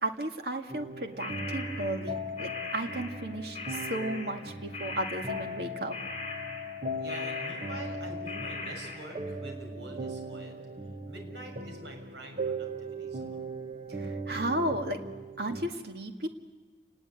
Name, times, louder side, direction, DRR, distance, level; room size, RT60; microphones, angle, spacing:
voice 1, 0.0-6.0 14.0-15.0 15.4-16.3, right 1 dB, 60° right, 4 dB, 2.1 m, -34 dB
sound 1, 0.7-15.6, equal, 40° right, 1.4 m, -38 dB
sound 2, 1.2-3.3 3.5-9.2, left 3 dB, 30° left, 6.4 m, -40 dB
voice 2, 7.0-10.5 11.0-13.4, right 1 dB, 80° right, 3 dB, 6.2 m, -45 dB
29.5 x 19.5 x 9.1 m, 1.3 s
head